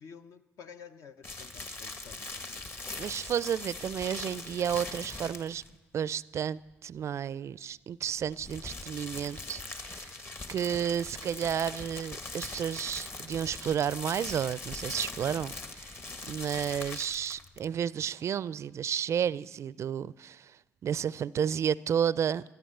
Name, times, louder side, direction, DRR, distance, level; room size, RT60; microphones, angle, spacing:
voice 1, 0.0-2.7, left 7 dB, 60° left, 0.8 m, -51 dB
sound 1, 1.2-5.7 8.2-17.8, left 3 dB, 40° left, 1.6 m, -41 dB
voice 2, 3.0-5.6 5.9-10.1 10.5-16.0 16.3-22.4, right 8 dB, 50° right, 0.4 m, -32 dB
13.5 x 13.0 x 6.7 m
hypercardioid pair, 60°, 6 cm